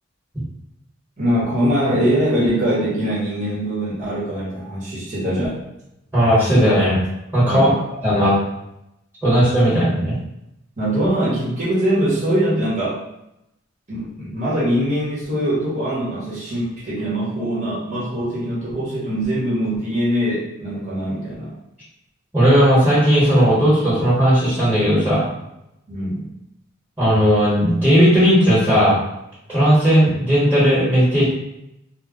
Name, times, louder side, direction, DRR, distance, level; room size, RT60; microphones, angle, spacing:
voice 1, 1.2-5.5 7.5-7.8 10.8-13.0 13.9-21.5 25.9-26.3, equal, 40° right, -8 dB, 1.0 m, -22 dB
voice 2, 6.1-7.0 7.3-7.7 8.0-8.3 9.2-10.2 22.3-25.3 27.0-29.0 29.5-31.2, equal, 10° right, -11 dB, 1.1 m, -16 dB
2.2 x 2.1 x 3.6 m, 0.85 s
head